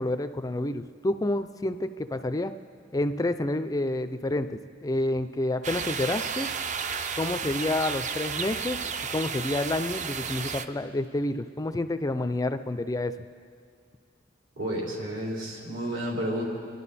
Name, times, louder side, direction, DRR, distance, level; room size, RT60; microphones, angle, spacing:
voice 1, 0.0-2.5 2.9-6.5 7.1-8.8 9.1-13.1, left 2 dB, 20° left, 10 dB, 0.4 m, -29 dB
sound 1, 5.6-10.7, right 6 dB, 40° right, 0.5 m, -32 dB
voice 2, 14.6-16.4, right 1 dB, 70° right, -3 dB, 3.9 m, -31 dB
28.0 x 12.0 x 4.2 m, 2.2 s
head